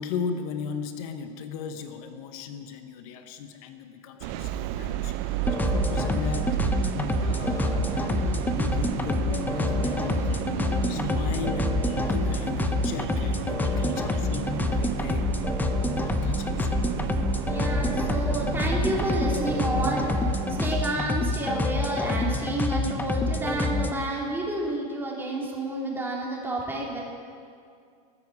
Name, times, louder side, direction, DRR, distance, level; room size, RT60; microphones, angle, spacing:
voice 1, 0.0-16.9 17.9-18.0, left 6 dB, 65° left, 8 dB, 1.0 m, -37 dB
sound 1, 4.2-20.8, right 10 dB, 55° right, 0.7 m, -32 dB
sound 2, 5.4-23.9, left 3 dB, 10° left, 0.8 m, -27 dB
voice 2, 17.4-20.0 20.6-27.0, right 2 dB, 10° right, -3 dB, 3.0 m, -30 dB
20.0 x 9.6 x 4.8 m, 2.3 s
supercardioid pair, 130°, 20 cm